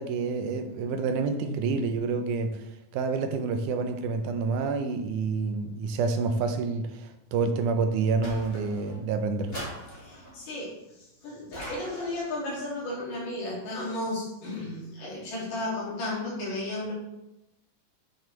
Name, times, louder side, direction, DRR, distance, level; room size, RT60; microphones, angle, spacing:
voice 1, 0.0-2.6 2.9-9.5, right 4 dB, 80° right, 6 dB, 2.3 m, -28 dB
sound 1, 8.2-9.0 9.5-10.4 11.5-12.3, equal, 20° left, 1.9 m, -40 dB
voice 2, 9.9-16.9, left 2 dB, 90° left, -5 dB, 4.4 m, -34 dB
8.8 x 6.5 x 3.4 m, 0.89 s
omnidirectional pair, 3.6 m